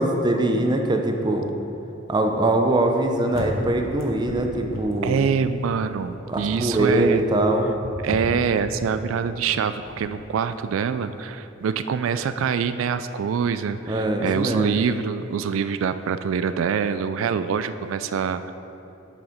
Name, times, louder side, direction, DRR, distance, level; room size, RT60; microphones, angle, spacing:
voice 1, 0.0-1.5 2.1-5.2 6.3-7.7 13.9-14.8, right 1 dB, 20° right, 3 dB, 0.6 m, -22 dB
sound 1, 2.9-10.1, left 1 dB, 80° left, 1.0 m, -36 dB
voice 2, 5.0-7.2 8.0-18.5, right 6 dB, 80° right, 11 dB, 0.3 m, -25 dB
7.1 x 6.2 x 5.1 m, 2.9 s
head